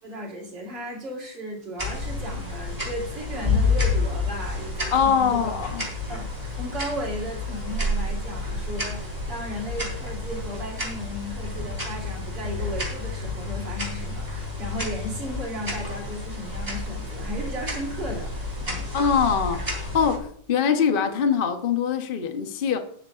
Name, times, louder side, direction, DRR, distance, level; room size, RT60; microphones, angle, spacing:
voice 1, 0.0-5.5 6.1-6.2 6.5-18.3 18.6-18.9, equal, 65° right, 4.0 m, -35 dB
sound 1, 1.8-20.2, left 2 dB, 20° right, 3.3 m, -30 dB
voice 2, 4.9-5.9 18.9-22.8, left 7 dB, 40° left, 0.8 m, -23 dB
19.0 x 8.5 x 2.5 m
omnidirectional pair, 2.1 m